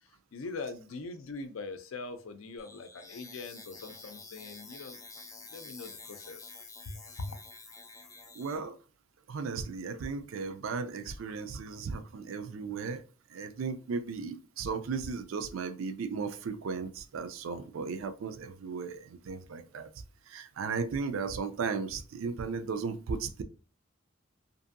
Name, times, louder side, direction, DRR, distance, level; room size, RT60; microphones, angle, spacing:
voice 1, 0.3-5.0 5.5-6.5 6.9-7.3, left 3 dB, 85° left, 0.5 m, -42 dB
sound 1, 2.6-8.6, left 4 dB, 15° left, 0.3 m, -49 dB
voice 2, 8.3-8.8 9.3-13.0 13.3-19.9 20.3-23.4, right 5 dB, 80° right, 0.4 m, -36 dB
2.6 x 2.5 x 2.5 m
head